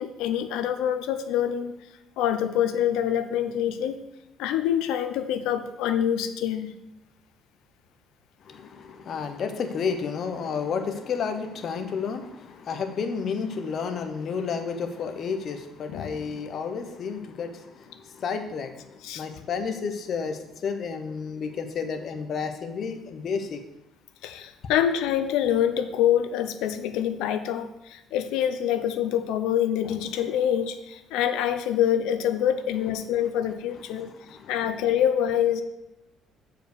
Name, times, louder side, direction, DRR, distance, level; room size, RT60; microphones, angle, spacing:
voice 1, 0.0-1.8 2.2-4.0 4.4-6.7 15.9-16.4 19.0-19.2 24.2-34.1 34.5-35.6, left 10 dB, 85° left, 9 dB, 0.7 m, -26 dB
voice 2, 8.4-23.6 34.0-34.5, left 5 dB, 40° left, 7 dB, 0.9 m, -31 dB
7.2 x 4.7 x 6.6 m, 0.90 s
cardioid pair, 155°, 0 cm